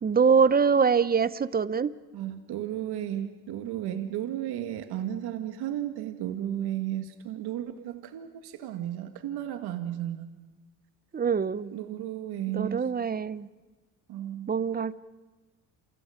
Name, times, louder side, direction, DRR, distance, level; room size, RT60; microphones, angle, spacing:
voice 1, 0.0-1.9 11.1-11.7 12.5-13.5 14.5-14.9, right 6 dB, 25° right, 17 dB, 0.7 m, -24 dB
voice 2, 2.1-10.3 11.7-12.8 14.1-14.5, right 11 dB, 70° right, 7 dB, 1.9 m, -34 dB
29.0 x 28.0 x 5.1 m, 1.2 s
cardioid pair, 105°, 40 cm